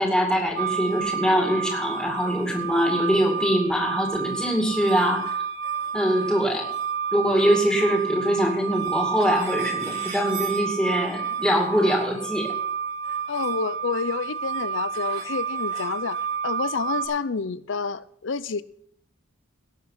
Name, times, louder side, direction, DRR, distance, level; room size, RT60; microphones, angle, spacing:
voice 1, 0.0-5.2 5.9-6.7 7.1-12.6, equal, 5° left, -1 dB, 2.4 m, -23 dB
sound 1, 0.6-17.1, right 7 dB, 80° right, 4.6 m, -30 dB
voice 2, 13.3-18.6, left 5 dB, 65° left, 17 dB, 0.6 m, -29 dB
18.0 x 6.9 x 5.8 m, 0.67 s
head